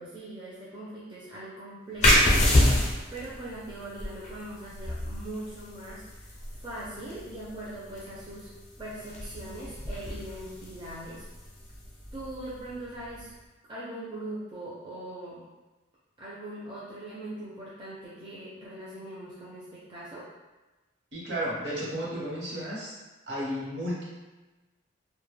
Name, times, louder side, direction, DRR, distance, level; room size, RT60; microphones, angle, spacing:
voice 1, 0.0-8.5 8.8-11.2 12.1-13.3 13.7-15.4 16.2-20.2, right 1 dB, 25° right, -8 dB, 0.4 m, -41 dB
sound 1, 2.0-13.3, left 1 dB, 35° left, 0.5 m, -28 dB
voice 2, 21.1-22.9 23.3-24.0, equal, 60° right, -6 dB, 0.8 m, -33 dB
2.1 x 2.1 x 3.1 m, 1.1 s
head